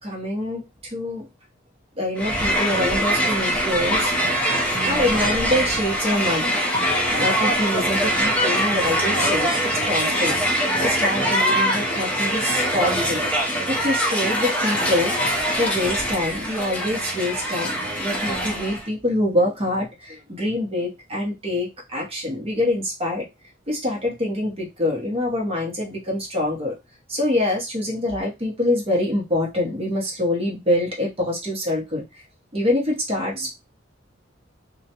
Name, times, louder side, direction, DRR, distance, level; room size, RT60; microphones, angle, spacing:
voice 1, 0.0-1.3 2.0-4.1 4.7-6.6 7.2-10.4 10.8-13.3 13.7-15.1 15.6-23.3 23.7-26.8 27.1-32.0 32.5-33.5, left 1 dB, 30° right, -2 dB, 0.9 m, -25 dB
Crowd, 2.2-18.9, equal, 5° left, 0.6 m, -23 dB
2.4 x 2.1 x 2.8 m, 0.23 s
head